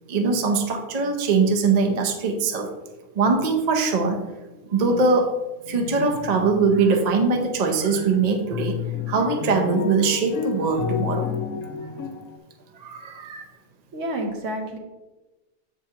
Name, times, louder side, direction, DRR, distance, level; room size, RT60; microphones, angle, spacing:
voice 1, 0.1-2.7 3.2-4.2 4.7-5.3 5.7-8.8 9.1-11.3 12.8-13.4, right 4 dB, 40° right, 2 dB, 0.6 m, -22 dB
sound 1, 5.7-5.9 6.1-7.5 7.9-12.4, left 7 dB, 75° left, 1.1 m, -32 dB
voice 2, 13.9-14.8, right 1 dB, 65° right, 3 dB, 1.2 m, -29 dB
6.9 x 5.0 x 2.8 m, 1.1 s
omnidirectional pair, 1.5 m